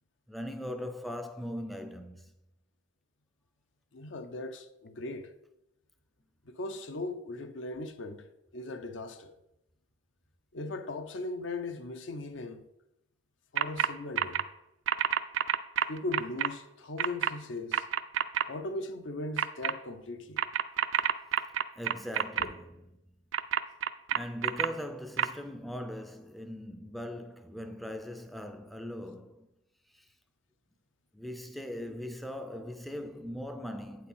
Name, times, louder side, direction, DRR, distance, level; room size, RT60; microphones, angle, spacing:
voice 1, 0.3-2.3 20.9-21.0 21.8-22.8 24.1-29.5 29.9-30.1 31.1-34.1, equal, ahead, 0.3 m, -40 dB
voice 2, 3.9-5.3 6.4-8.3 8.5-9.3 10.5-12.6 13.5-14.5 15.9-17.9 18.5-20.4 22.4-22.5, left 2 dB, 75° left, 0.7 m, -38 dB
sound 1, 13.6-13.9 14.2-14.4 14.9-16.5 17.0-17.3 17.7-18.4 19.4-19.7 20.4-22.4 23.3-24.7 25.2-25.3, right 9 dB, 80° right, 0.4 m, -27 dB
8.5 x 4.5 x 5.4 m
head